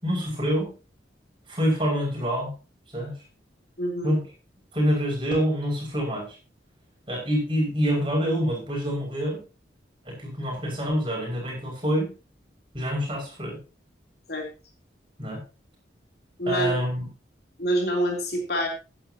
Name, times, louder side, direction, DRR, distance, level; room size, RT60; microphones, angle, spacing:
voice 1, 0.0-0.7 1.5-2.5 2.9-3.1 4.0-4.2 4.7-6.4 7.1-9.4 10.0-12.1 12.7-13.6 15.2-15.4 16.5-17.1, equal, 25° right, -1 dB, 6.2 m, -26 dB
voice 2, 3.8-4.2 14.3-14.5 16.4-16.8 17.6-18.7, right 1 dB, 55° left, 1 dB, 3.6 m, -26 dB
16.5 x 10.0 x 3.0 m, 0.33 s
head